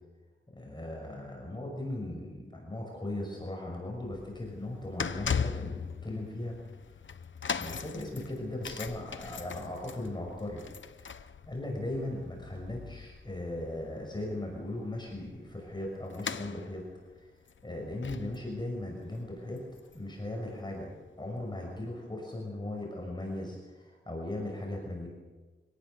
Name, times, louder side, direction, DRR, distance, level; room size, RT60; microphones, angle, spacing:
voice 1, 0.6-6.6 7.5-10.6 11.0-11.1 11.5-16.8 17.2-17.3 17.6-19.6 19.9-20.9 21.2-25.1, left 1 dB, 20° left, -1 dB, 6.0 m, -38 dB
sound 1, 3.9-20.3 20.5-20.8 21.6-21.7, left 6 dB, 75° left, 0.9 m, -40 dB
26.5 x 18.5 x 6.9 m, 1.3 s
wide cardioid pair, 75°, 20 cm